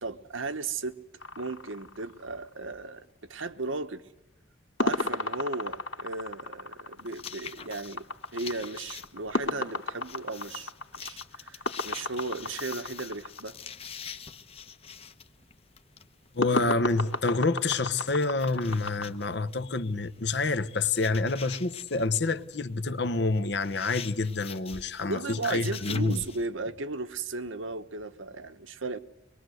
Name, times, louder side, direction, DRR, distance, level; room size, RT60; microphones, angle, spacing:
voice 1, 0.0-1.0 1.4-4.0 4.8-8.1 8.3-10.7 11.0-13.6 25.1-29.0, right 3 dB, 85° right, 1.3 m, -35 dB
sound 1, 1.2-2.6 4.8-13.4 16.4-19.1, left 2 dB, 80° left, 2.3 m, -33 dB
sound 2, 7.0-26.5, left 7 dB, 30° left, 1.0 m, -46 dB
voice 2, 16.3-26.2, left 3 dB, 60° left, 1.1 m, -28 dB
25.0 x 21.5 x 7.9 m
head